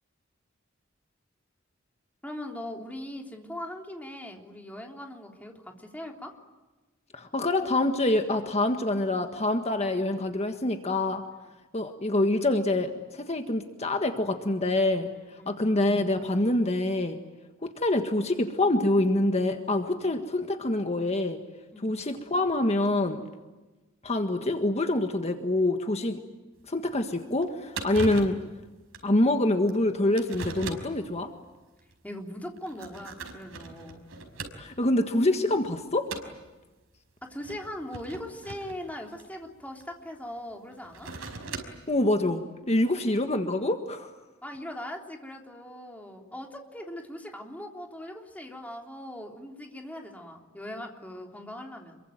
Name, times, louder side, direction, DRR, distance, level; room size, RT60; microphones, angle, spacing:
voice 1, 2.2-6.3 15.4-15.6 21.7-21.9 32.0-34.0 37.2-41.1 42.9-43.0 44.4-52.0, left 1 dB, 10° left, 2 dB, 3.5 m, -40 dB
voice 2, 7.1-11.2 11.7-15.1 15.5-17.2 17.6-21.4 21.8-23.2 24.0-26.2 26.7-28.4 29.0-31.3 34.6-36.1 41.9-44.1, left 1 dB, 30° left, 6 dB, 1.6 m, -26 dB
sound 1, 26.6-26.7 27.1-27.2 27.4-27.5 27.7-28.5 28.9-29.1 29.7-29.8 30.2-31.0 31.8-31.9 32.6-34.9 35.3-35.6 36.1-36.4 37.3-39.9 40.7-41.9, right 3 dB, 80° right, 5.2 m, -39 dB
27.5 x 23.5 x 9.3 m, 1.2 s
head